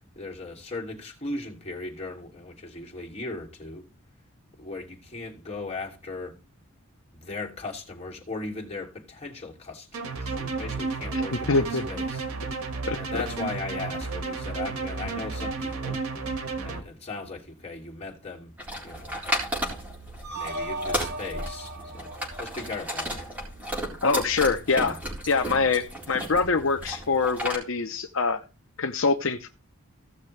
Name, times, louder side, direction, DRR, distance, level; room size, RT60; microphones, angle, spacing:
voice 1, 0.0-3.9 4.6-6.4 7.1-12.2 13.0-16.0 16.6-18.5 18.8-19.2 20.3-23.3, left 3 dB, 30° left, 2.8 m, -38 dB
sound 1, 9.9-16.8, right 4 dB, 85° right, 1.7 m, -32 dB
voice 2, 11.5-11.8 12.9-13.0 24.0-25.0 25.3-28.4 28.8-29.5, left 4 dB, 65° left, 0.7 m, -24 dB
sound 2, 18.6-27.5, equal, 5° right, 4.1 m, -34 dB
sound 3, 20.2-23.4, right 1 dB, 50° right, 2.3 m, -37 dB
16.5 x 6.5 x 3.3 m
head